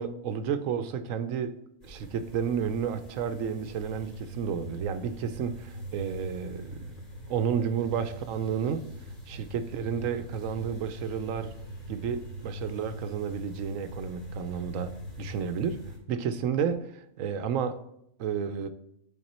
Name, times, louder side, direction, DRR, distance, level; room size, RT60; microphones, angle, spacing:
voice 1, 0.0-1.6 1.8-6.9 7.3-8.8 9.3-11.5 11.9-15.8 16.1-17.8 18.2-18.7, right 7 dB, 75° right, 10 dB, 1.0 m, -31 dB
sound 1, 1.8-16.0, equal, 30° left, 2.7 m, -43 dB
10.5 x 4.0 x 4.2 m, 0.76 s
omnidirectional pair, 1.4 m